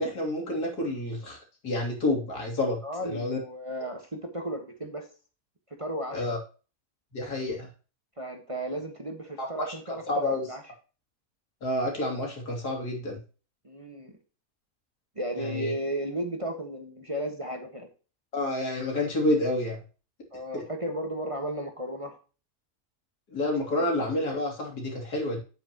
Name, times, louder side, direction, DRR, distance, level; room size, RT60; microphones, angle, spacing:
voice 1, 0.0-1.4 1.6-3.4 6.1-6.4 7.1-7.7 9.4-10.4 11.6-13.2 15.4-15.7 18.3-19.8 20.5-20.6 23.3-25.4, left 1 dB, 80° left, 0 dB, 3.5 m, -29 dB
voice 2, 2.8-5.1 5.8-6.2 8.2-10.6 13.6-14.1 15.1-17.9 20.3-22.2 23.7-23.8, right 1 dB, 20° right, 3 dB, 1.4 m, -34 dB
9.0 x 8.5 x 2.9 m, 0.35 s
omnidirectional pair, 1.7 m